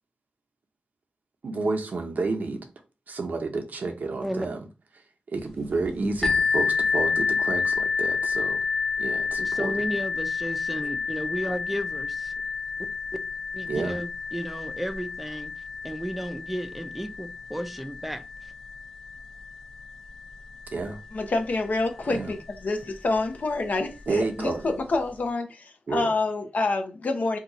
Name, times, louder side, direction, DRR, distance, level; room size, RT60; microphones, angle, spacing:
voice 1, 1.4-2.7 3.1-4.6 5.3-8.7 9.0-9.7 13.7-14.0 20.7-21.0 22.0-22.3 24.1-24.7 25.9-26.1, right 3 dB, 75° right, 0.7 m, -30 dB
sound 1, 6.2-21.8 22.5-22.6 23.2-23.3, left 5 dB, 15° left, 1.0 m, -30 dB
voice 2, 9.4-12.3 13.5-15.5 15.8-18.5, equal, 5° right, 0.5 m, -33 dB
voice 3, 21.1-27.4, left 3 dB, 70° left, 0.6 m, -27 dB
2.8 x 2.4 x 4.0 m
cardioid pair, 60°, 3 cm